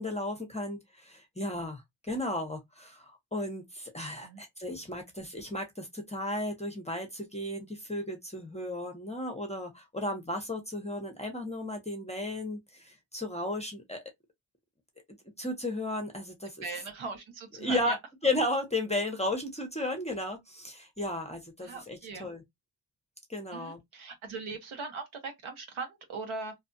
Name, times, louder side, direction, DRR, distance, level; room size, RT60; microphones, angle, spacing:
voice 1, 0.0-14.0 15.4-16.7 17.6-18.0 18.2-22.4 23.3-23.8, left 1 dB, 15° left, 0.7 m, -34 dB
voice 2, 16.6-18.0 21.6-22.3 23.5-26.5, right 4 dB, 80° right, 1.1 m, -40 dB
2.6 x 2.3 x 2.6 m
cardioid pair, 80°, 48 cm